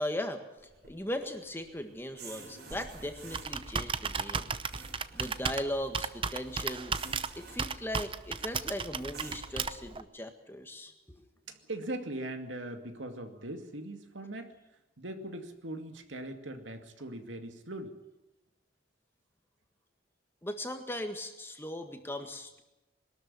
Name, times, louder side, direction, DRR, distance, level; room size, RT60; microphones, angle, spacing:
voice 1, 0.0-4.9 5.1-7.0 7.4-10.9 20.4-22.6, left 1 dB, 10° left, 6 dB, 1.7 m, -38 dB
sound 1, 0.6-9.7, right 4 dB, 55° right, 5.3 m, -53 dB
Computer keyboard, 2.7-10.0, right 5 dB, 25° right, 0.7 m, -35 dB
voice 2, 11.5-14.6 15.0-18.0, right 1 dB, 80° right, 6 dB, 2.3 m, -40 dB
22.0 x 13.0 x 9.8 m, 0.98 s
head